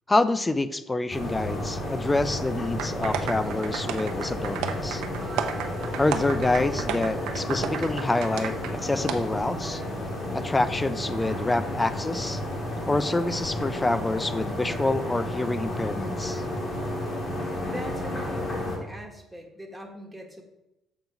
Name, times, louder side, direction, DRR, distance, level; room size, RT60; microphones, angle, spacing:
voice 1, 0.1-5.0 6.0-9.8 10.3-12.4 12.9-16.4, left 2 dB, 15° left, 14 dB, 0.4 m, -27 dB
sound 1, 1.1-18.8, left 1 dB, 35° left, 2.2 m, -32 dB
sound 2, 2.8-11.7, right 4 dB, 40° right, 0.8 m, -46 dB
sound 3, 2.8-8.7 9.1-9.2, right 8 dB, 90° right, 0.7 m, -32 dB
voice 2, 17.6-20.4, equal, ahead, 2 dB, 1.3 m, -41 dB
7.3 x 3.9 x 5.8 m, 0.90 s
cardioid pair, 130°, 0 cm